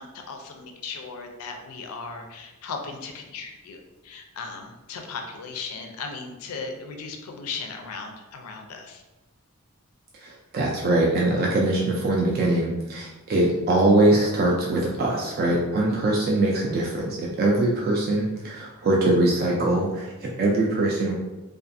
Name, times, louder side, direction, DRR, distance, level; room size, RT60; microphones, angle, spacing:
voice 1, 0.0-9.0, left 4 dB, 75° left, 4 dB, 0.4 m, -37 dB
voice 2, 10.2-21.1, right 2 dB, 45° right, -3 dB, 0.3 m, -22 dB
2.4 x 2.4 x 2.5 m, 1.1 s
head